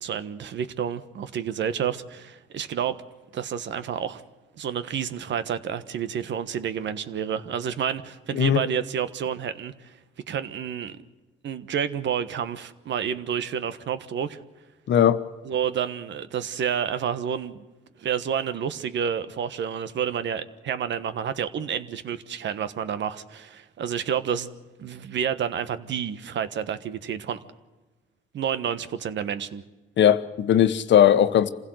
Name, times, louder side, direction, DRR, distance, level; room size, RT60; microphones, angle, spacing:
voice 1, 0.0-3.0 3.3-4.2 4.6-10.0 10.3-11.0 11.4-14.4 15.4-17.6 18.0-24.5 24.8-27.4 28.3-29.6, right 8 dB, 65° right, 1.3 m, -29 dB
voice 2, 14.9-15.2 30.0-31.5, left 10 dB, 65° left, 1.2 m, -18 dB
26.5 x 16.5 x 7.9 m
cardioid pair, 90°, 20 cm